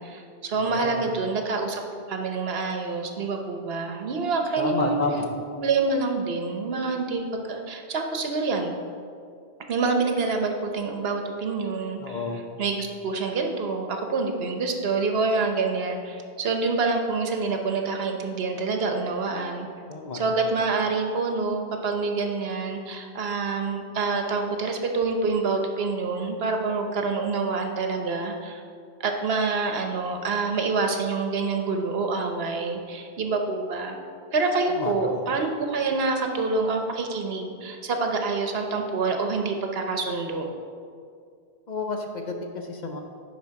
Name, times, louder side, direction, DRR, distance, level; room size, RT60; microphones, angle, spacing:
voice 1, 0.0-1.8 2.1-5.0 5.6-8.8 9.7-12.2 12.6-19.7 20.1-28.6 29.0-34.0 34.3-40.5, right 4 dB, 75° right, 4 dB, 1.1 m, -27 dB
voice 2, 0.6-1.0 4.6-5.3 12.0-12.4 19.9-20.4 34.8-35.2 41.7-43.0, left 3 dB, 50° left, 3 dB, 0.7 m, -31 dB
10.5 x 4.2 x 4.6 m, 2.3 s
omnidirectional pair, 1.0 m